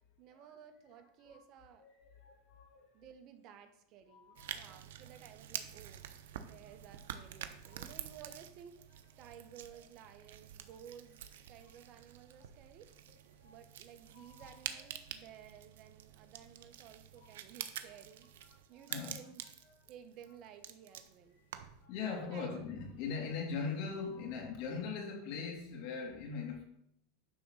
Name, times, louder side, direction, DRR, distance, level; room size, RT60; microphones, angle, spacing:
voice 1, 0.2-1.9 2.9-8.8 9.2-11.2 11.5-12.9 13.4-18.3 18.7-19.4 19.9-21.5 22.2-22.6, right 8 dB, 45° right, 1.2 m, -55 dB
voice 2, 1.8-3.1 4.1-4.7 7.6-7.9 13.4-13.6 14.1-14.5 14.9-15.2 17.2-17.3 18.7-19.2 21.6-26.6, left 5 dB, 55° left, 2.8 m, -41 dB
sound 1, 4.4-21.9, right 10 dB, 80° right, 0.8 m, -48 dB
10.0 x 3.9 x 7.2 m
supercardioid pair, 140°, 0 cm